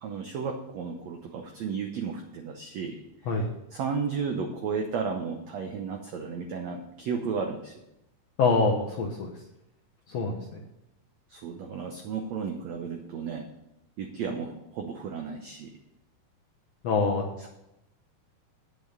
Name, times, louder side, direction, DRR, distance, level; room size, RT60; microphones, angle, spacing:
voice 1, 0.0-3.0 3.7-7.7 11.3-13.5 14.0-15.7 17.4-17.5, right 5 dB, 80° right, 3 dB, 1.5 m, -33 dB
voice 2, 8.4-9.3 10.1-10.6 16.8-17.2, left 4 dB, 70° left, 0 dB, 1.6 m, -25 dB
9.7 x 6.9 x 6.6 m, 0.87 s
omnidirectional pair, 4.3 m